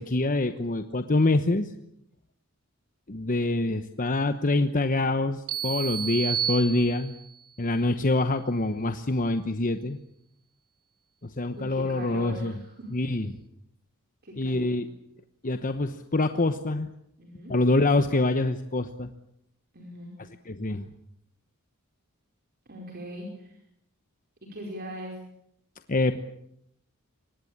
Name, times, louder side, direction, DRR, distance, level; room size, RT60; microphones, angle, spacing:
voice 1, 0.0-1.7 3.1-7.1 7.6-10.0 11.2-12.5 12.9-13.3 14.4-14.9 15.4-16.9 17.5-19.1 20.5-20.8 25.9-26.2, left 2 dB, 40° left, 9 dB, 1.0 m, -25 dB
sound 1, 5.5-7.3, right 8 dB, 80° right, 2.6 m, -31 dB
voice 2, 11.5-12.9 14.2-14.8 17.2-17.5 19.7-20.1 22.6-23.6 24.4-25.2, equal, 45° right, 0 dB, 4.9 m, -40 dB
24.0 x 19.5 x 8.7 m, 0.75 s
head